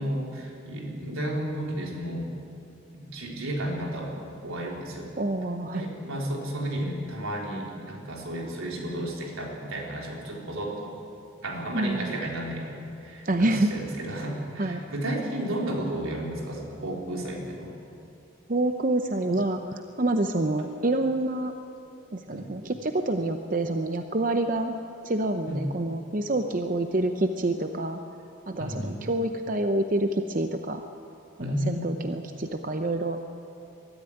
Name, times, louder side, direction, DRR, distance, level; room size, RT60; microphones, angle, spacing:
voice 1, 0.0-2.3 2.9-4.2 4.4-5.1 5.7-10.9 11.4-17.7 22.3-22.6 25.5-25.7 28.6-29.0 31.4-31.9, right 1 dB, 85° right, -1 dB, 3.9 m, -32 dB
voice 2, 5.2-5.8 11.7-12.1 13.2-13.7 14.6-14.8 18.5-21.5 22.1-24.8 25.0-28.0 28.5-30.8 31.4-33.2, right 2 dB, 40° right, 6 dB, 0.7 m, -27 dB
22.0 x 13.5 x 9.9 m, 2.7 s
head